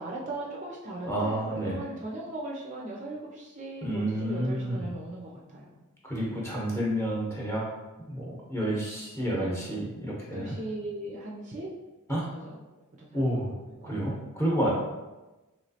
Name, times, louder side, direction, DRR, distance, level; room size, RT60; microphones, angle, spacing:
voice 1, 0.0-5.7 9.3-9.6 10.3-11.7 12.1-12.6 13.0-14.1, right 2 dB, 35° right, -3 dB, 0.4 m, -38 dB
voice 2, 1.0-1.8 3.8-4.9 6.0-7.6 8.1-10.5 12.1-12.2 13.1-13.5 13.8-14.7, right 1 dB, 10° left, -5 dB, 0.8 m, -30 dB
3.1 x 3.0 x 2.7 m, 1.1 s
head